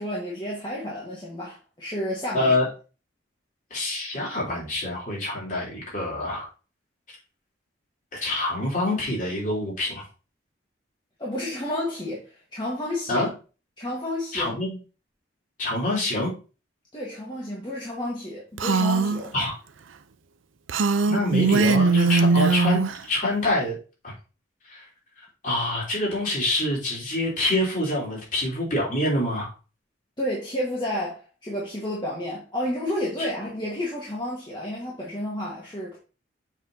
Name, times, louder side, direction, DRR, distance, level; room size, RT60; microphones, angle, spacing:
voice 1, 0.0-2.5 11.2-13.3 13.8-14.6 16.9-19.3 30.2-36.0, left 1 dB, 25° left, 1.6 m, -31 dB
voice 2, 2.3-2.7 3.7-6.5 7.1-7.2 8.1-10.0 13.1-13.3 14.3-14.8 15.6-16.3 19.3-19.5 21.1-23.7 24.0-24.1 24.7-24.8 25.4-29.5, left 1 dB, 40° left, 3.5 m, -26 dB
Female speech woman speaking, 18.6-19.2 20.7-23.0, right 4 dB, 90° right, 0.6 m, -20 dB
7.2 x 6.0 x 2.8 m
head